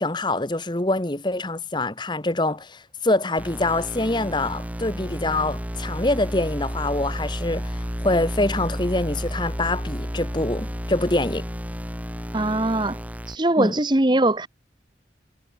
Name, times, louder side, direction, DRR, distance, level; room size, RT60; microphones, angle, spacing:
voice 1, 0.0-11.4 13.6-13.7, left 2 dB, 25° left, 1.2 m, -25 dB
sound 1, 3.4-13.4, equal, 10° right, 5.1 m, -31 dB
voice 2, 12.3-13.0 13.3-14.5, right 1 dB, 25° right, 1.1 m, -21 dB
head